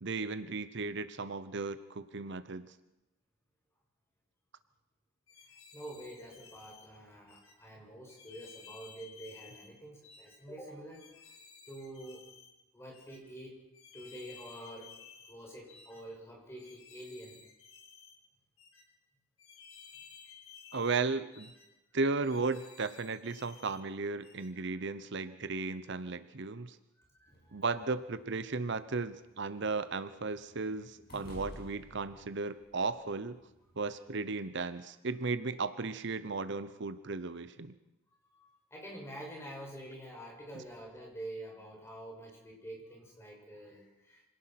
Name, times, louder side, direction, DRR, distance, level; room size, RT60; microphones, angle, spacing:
voice 1, 0.0-2.7 20.7-21.5 21.9-26.8 27.5-33.4 33.8-37.7 40.5-40.6, right 3 dB, 60° right, 13 dB, 0.9 m, -35 dB
sound 1, 5.3-6.9 7.3-7.6 8.1-9.7 10.0-10.4 10.9-12.5 12.9-13.2 13.7-15.4 15.7-16.0 16.6-18.2 18.6-18.9 19.4-21.0 21.3-21.7 22.2-23.8 24.2-24.5, left 6 dB, 75° left, 5.3 m, -55 dB
voice 2, 5.7-11.1 11.6-12.3 12.7-13.6 13.9-14.9 15.3-17.4 24.6-24.7 27.0-27.6 38.4-44.3, right 1 dB, 15° left, -1 dB, 6.4 m, -47 dB
sound 2, 27.3-34.0, equal, 50° left, 6.6 m, -54 dB
26.0 x 18.0 x 5.9 m, 0.97 s
head